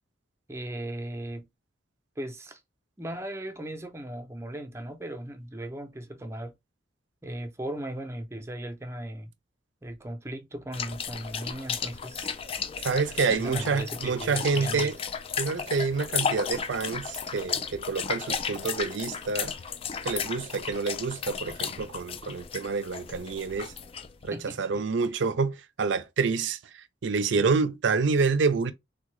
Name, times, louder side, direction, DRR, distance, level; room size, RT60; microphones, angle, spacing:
voice 1, 0.5-1.5 2.2-2.6 3.0-6.5 7.2-9.3 9.8-12.3 13.3-14.9 24.3-24.8, right 1 dB, 15° right, 0.5 m, -37 dB
sound 1, 10.7-24.3, left 6 dB, 30° left, 0.3 m, -34 dB
voice 2, 12.8-14.9 15.4-19.5 20.0-23.7 24.2-28.7, right 4 dB, 80° right, 0.5 m, -28 dB
3.6 x 2.2 x 3.1 m
head